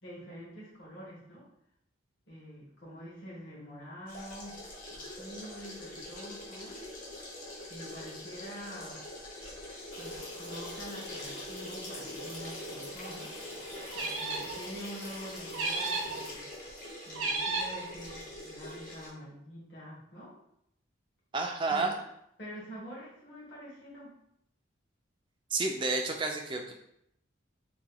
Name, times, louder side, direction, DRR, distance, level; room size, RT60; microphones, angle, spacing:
voice 1, 0.0-1.5 2.3-4.6 4.9-6.8 7.6-9.0 10.0-13.3 13.9-16.5 17.1-20.4 21.7-22.0 22.4-24.1, equal, 60° left, -7 dB, 1.1 m, -46 dB
sound 1, 4.1-19.1, left 1 dB, 45° left, 0.8 m, -45 dB
sound 2, 9.9-16.3, equal, 80° left, 1.2 m, -44 dB
sound 3, 13.9-14.6 15.5-16.2 17.1-17.8, right 3 dB, 90° right, 0.6 m, -33 dB
voice 2, 21.3-21.9 25.5-26.7, right 3 dB, 25° right, 2 dB, 0.3 m, -30 dB
2.9 x 2.2 x 3.7 m, 0.75 s
head